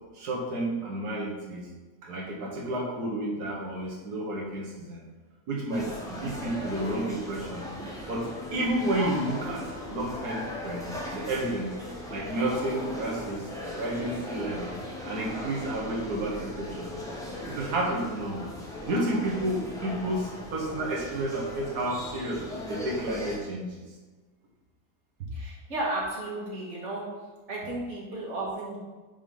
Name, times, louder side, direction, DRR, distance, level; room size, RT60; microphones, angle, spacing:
voice 1, 0.1-1.7 2.0-5.0 5.5-7.7 8.1-11.8 12.1-13.5 13.7-14.7 15.0-16.9 17.5-18.4 18.9-22.4 22.7-23.8, right 1 dB, 85° right, -3 dB, 1.8 m, -31 dB
sound 1, 5.7-23.4, left 1 dB, ahead, 1.2 m, -38 dB
voice 2, 25.3-27.1 27.5-28.8, right 2 dB, 50° right, -4 dB, 2.0 m, -33 dB
5.3 x 5.1 x 5.4 m, 1.3 s
omnidirectional pair, 1.6 m